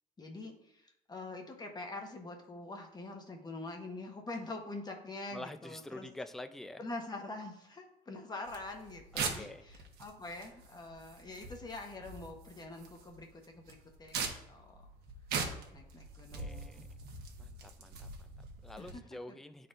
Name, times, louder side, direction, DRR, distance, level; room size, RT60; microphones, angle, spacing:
voice 1, 0.2-6.1 6.8-14.8 15.7-16.8 18.8-19.0, left 2 dB, 25° left, 2 dB, 1.0 m, -45 dB
voice 2, 5.3-6.8 9.1-9.6 16.3-16.8 17.4-19.7, left 2 dB, ahead, 8 dB, 0.4 m, -47 dB
sound 1, 8.5-18.9, right 5 dB, 70° right, 1.3 m, -42 dB
10.5 x 4.2 x 2.6 m, 0.84 s
cardioid pair, 110°, 17 cm